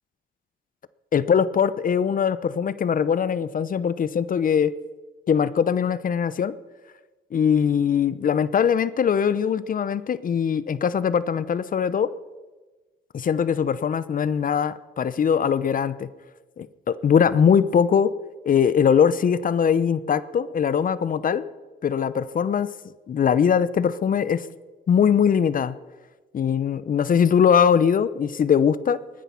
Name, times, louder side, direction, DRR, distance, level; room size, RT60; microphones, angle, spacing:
voice 1, 1.1-4.7 5.3-6.5 7.3-12.1 13.1-16.1 16.6-18.1 18.4-21.5 21.8-22.7 23.1-24.5 24.9-25.7 26.3-29.0, left 7 dB, 45° left, 16 dB, 0.7 m, -21 dB
19.5 x 10.0 x 5.7 m, 1.2 s
cardioid pair, 90°, 20 cm